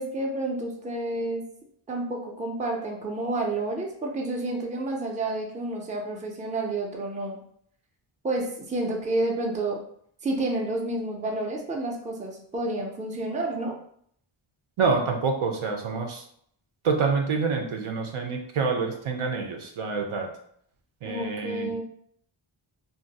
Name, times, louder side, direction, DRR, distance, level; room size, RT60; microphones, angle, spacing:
voice 1, 0.0-1.4 1.9-7.4 8.2-9.8 10.2-13.7 21.0-21.8, right 2 dB, 15° right, 0 dB, 0.5 m, -30 dB
voice 2, 14.8-16.2 16.8-20.3 21.0-21.7, right 4 dB, 75° right, 3 dB, 0.7 m, -27 dB
2.6 x 2.0 x 3.9 m, 0.64 s
wide cardioid pair, 125°, 50 cm